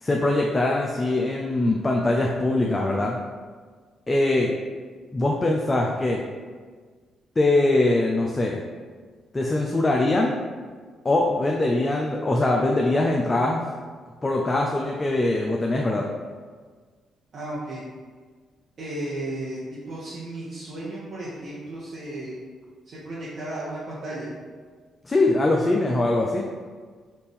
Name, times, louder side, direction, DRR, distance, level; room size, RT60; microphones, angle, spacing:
voice 1, 0.0-3.2 4.1-4.5 5.1-6.2 7.4-8.6 9.3-10.3 11.0-13.7 14.2-16.1 25.0-26.5, left 2 dB, 30° left, 0 dB, 0.4 m, -22 dB
voice 2, 17.3-17.8 18.8-22.3 22.9-24.3, right 1 dB, 60° right, -9 dB, 0.9 m, -34 dB
4.2 x 2.5 x 3.5 m, 1.5 s
hypercardioid pair, 45°, 0 cm